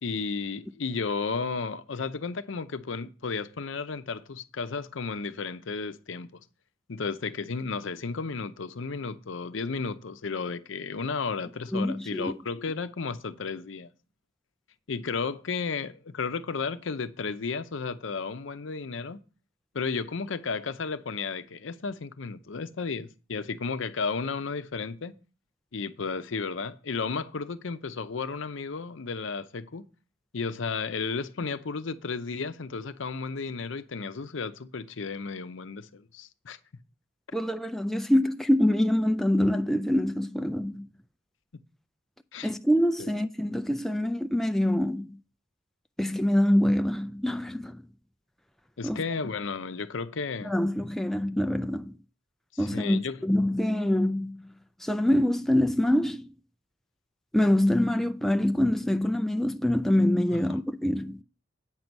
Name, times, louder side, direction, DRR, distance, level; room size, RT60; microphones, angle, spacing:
voice 1, 0.0-6.3 6.9-13.9 14.9-19.2 19.7-25.1 25.7-29.8 30.3-36.6 42.3-42.5 43.0-43.1 48.8-50.5 52.7-53.2 60.3-60.6, left 4 dB, 70° left, 0.6 m, -33 dB
voice 2, 11.7-12.3 37.3-40.9 42.4-45.2 46.0-47.8 48.8-49.0 50.4-51.9 52.6-54.4 54.8-56.3 57.3-61.2, left 1 dB, ahead, 0.3 m, -25 dB
8.9 x 6.0 x 5.3 m
head